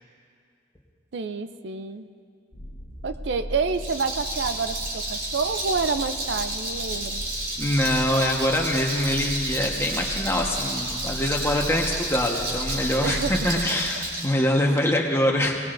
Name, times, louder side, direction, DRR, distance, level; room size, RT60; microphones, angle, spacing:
voice 1, 1.1-2.1 3.0-7.2 13.0-13.3, right 4 dB, 75° right, 10 dB, 0.5 m, -28 dB
sound 1, 2.5-13.9, equal, 40° left, 1.4 m, -37 dB
Rattle, 3.7-14.3, right 1 dB, 50° right, 3.0 m, -31 dB
voice 2, 7.6-15.6, left 1 dB, 15° left, 0 dB, 1.2 m, -24 dB
21.5 x 19.0 x 2.6 m, 2.2 s
head